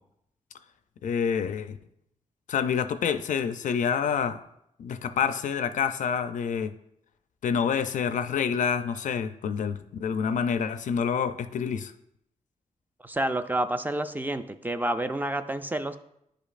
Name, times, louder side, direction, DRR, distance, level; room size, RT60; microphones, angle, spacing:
voice 1, 1.0-1.8 2.5-4.4 4.8-6.7 7.4-11.9, left 7 dB, 70° left, 11 dB, 0.4 m, -27 dB
voice 2, 13.0-16.0, right 1 dB, 15° right, 9 dB, 0.3 m, -29 dB
10.5 x 5.1 x 2.5 m, 0.78 s
wide cardioid pair, 110°, 13 cm